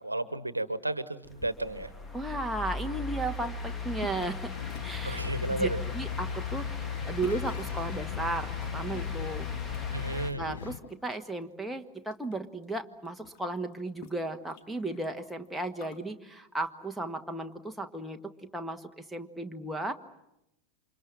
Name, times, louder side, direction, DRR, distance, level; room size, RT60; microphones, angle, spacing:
voice 1, 0.0-1.9 5.0-5.8 9.9-10.5, right 2 dB, 85° right, 15 dB, 1.2 m, -32 dB
sound 1, 1.2-10.3, left 5 dB, 15° left, 1.9 m, -36 dB
voice 2, 2.1-4.5 4.8-5.2 5.5-5.7 5.9-9.5 10.4-19.9, right 2 dB, ahead, 3 dB, 1.6 m, -35 dB
sound 2, 4.0-4.4 4.7-5.5 6.0-6.3 7.2-7.8 8.7-9.8 10.1-11.2 11.6-12.3 12.6-12.7 12.9-16.0, left 9 dB, 45° left, 1.8 m, -50 dB
sound 3, 4.5-10.8, left 5 dB, 65° left, 1.2 m, -42 dB
29.0 x 26.0 x 7.5 m, 0.86 s
figure-of-eight pair, 90°, 0 cm